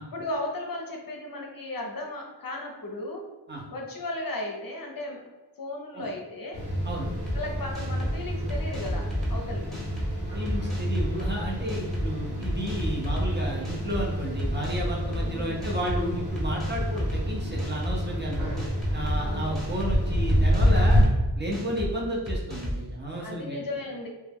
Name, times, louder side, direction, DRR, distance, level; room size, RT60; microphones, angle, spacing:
voice 1, 0.1-3.3 3.7-5.2 5.6-6.7 7.3-9.6 15.1-15.8 19.2-19.5 23.2-24.1, left 2 dB, 55° left, 1 dB, 0.6 m, -35 dB
sound 1, 6.5-21.0, equal, 85° right, 0.8 m, -28 dB
sound 2, 7.3-7.4 7.7-8.1 8.5-9.3 9.7-10.1 10.5-11.3 11.7-12.0 12.4-13.3 13.6-14.0 14.4-15.2 15.6-16.0 16.4-17.2 17.6-17.9 18.3-19.2 19.5-19.9 20.3-21.1 21.5-21.9 22.3-22.8, equal, ahead, 1.0 m, -32 dB
voice 2, 10.3-18.4 18.9-21.0 21.4-23.6, equal, 25° right, -3 dB, 0.6 m, -32 dB
2.3 x 2.0 x 3.4 m, 1.2 s
wide cardioid pair, 45°, 43 cm